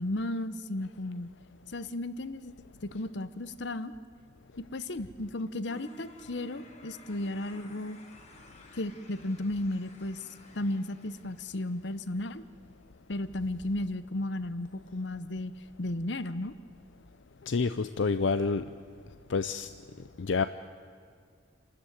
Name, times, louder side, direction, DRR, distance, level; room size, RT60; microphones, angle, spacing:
voice 1, 0.0-1.3 1.7-2.5 2.8-3.9 4.7-8.0 8.7-10.2 10.5-12.4 13.1-15.5 15.8-16.5, left 1 dB, 70° left, 14 dB, 0.9 m, -34 dB
sound 1, 5.7-12.6, left 1 dB, 35° left, 2.2 m, -54 dB
voice 2, 17.5-18.7 19.3-19.7 20.2-20.4, left 4 dB, 85° left, 11 dB, 0.5 m, -28 dB
27.0 x 13.5 x 9.4 m, 2.2 s
head